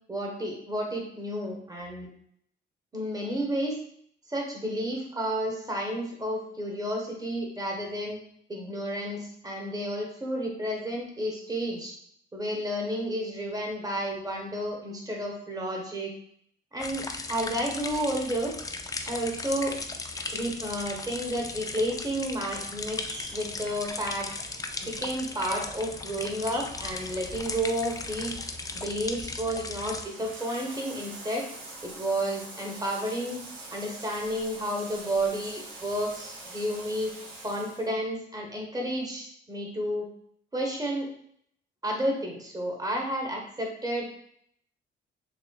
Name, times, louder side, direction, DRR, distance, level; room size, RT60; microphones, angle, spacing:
voice 1, 0.1-2.1 2.9-3.8 4.3-8.2 8.5-11.9 12.3-16.1 16.7-18.6 19.1-19.8 20.3-24.3 24.8-28.4 28.7-31.5 31.8-33.4 33.7-37.1 37.4-40.1 40.5-41.1 41.8-44.0, equal, 20° right, -1 dB, 1.2 m, -31 dB
sound 1, 16.8-30.0, left 3 dB, 20° left, 0.3 m, -37 dB
Bathtub (filling or washing), 23.0-37.9, right 2 dB, 80° right, 1.5 m, -45 dB
6.1 x 2.1 x 2.3 m, 0.66 s
cardioid pair, 90°, 20 cm